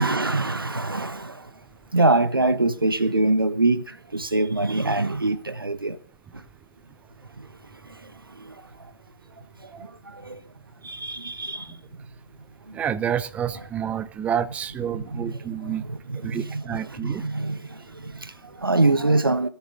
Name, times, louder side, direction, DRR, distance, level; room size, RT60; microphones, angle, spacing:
voice 1, 0.0-1.5 1.9-6.0 8.4-8.5 9.6-9.7 10.1-10.4 10.8-11.7 13.5-13.6 14.9-19.5, right 2 dB, 90° right, 1.1 m, -24 dB
voice 2, 12.7-15.8 16.1-17.2, right 9 dB, 10° right, 0.6 m, -29 dB
18.0 x 13.5 x 3.8 m
figure-of-eight pair, 130°, 11 cm